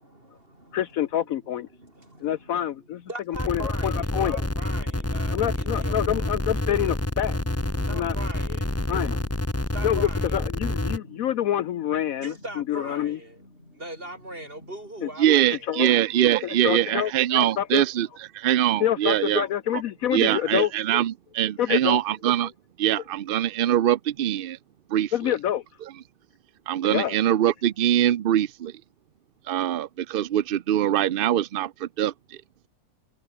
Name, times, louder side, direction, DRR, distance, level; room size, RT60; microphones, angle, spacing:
voice 1, 0.0-0.9 1.4-6.4 7.9-8.7 9.7-10.4 12.2-13.4 13.7-15.7, right 1 dB, 35° right, 8.0 m, -41 dB
voice 2, 0.7-1.7 2.2-3.0 3.3-4.4 5.3-7.4 7.7-8.2 8.9-9.2 9.8-13.2 15.0-15.1 15.7-15.9 16.4-17.8 18.8-21.0 21.6-22.0 25.1-25.6 26.8-27.2, left 11 dB, 65° left, 1.0 m, -27 dB
sound 1, 3.3-11.0, left 1 dB, 10° left, 1.4 m, -28 dB
sound 2, 3.6-15.6, left 1 dB, 40° left, 7.2 m, -51 dB
voice 3, 15.2-18.1 18.3-19.4 20.1-22.5 22.8-24.6 24.9-25.1 26.7-28.7 29.5-32.4, right 11 dB, 90° right, 0.4 m, -23 dB
omnidirectional pair, 1.7 m